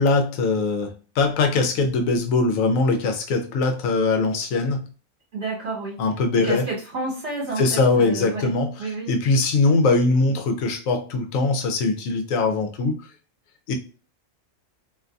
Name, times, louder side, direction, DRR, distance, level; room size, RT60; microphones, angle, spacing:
voice 1, 0.0-4.9 6.0-6.6 7.6-13.0 13.7-13.8, left 3 dB, 80° left, 1.0 m, -21 dB
voice 2, 5.3-6.0 6.4-8.5 8.8-9.1, right 3 dB, 60° right, 1.2 m, -30 dB
2.6 x 2.5 x 2.2 m
omnidirectional pair, 1.4 m